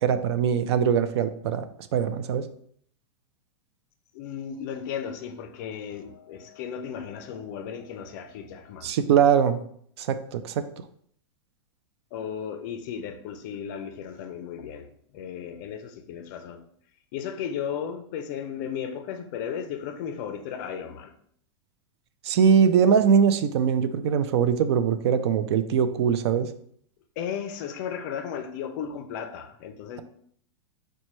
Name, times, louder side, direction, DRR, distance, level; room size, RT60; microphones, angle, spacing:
voice 1, 0.0-1.7 1.9-2.4 8.8-9.6 10.0-10.6 22.2-26.5, right 7 dB, 65° right, 0.4 m, -22 dB
voice 2, 4.1-9.0 12.1-16.6 17.1-21.1 27.2-30.0, left 8 dB, 40° left, 0.4 m, -35 dB
5.2 x 2.2 x 3.0 m
supercardioid pair, 160°, 15 cm